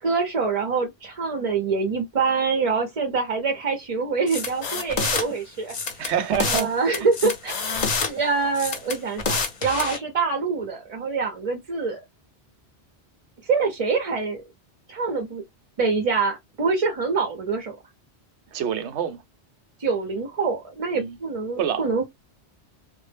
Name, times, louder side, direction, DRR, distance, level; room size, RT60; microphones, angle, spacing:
voice 1, 0.0-5.8 6.4-7.5 8.0-12.0 13.4-14.4 14.9-15.4 15.8-17.8 19.8-22.1, right 4 dB, 45° right, 0.5 m, -25 dB
sound 1, 4.3-5.2 5.7-6.7 6.9-8.1 8.5-10.0, left 4 dB, 45° left, 0.6 m, -27 dB
voice 2, 6.0-6.7 18.5-19.2 20.9-21.2 21.6-22.1, right 8 dB, 90° right, 0.9 m, -26 dB
2.0 x 2.0 x 3.2 m
omnidirectional pair, 1.1 m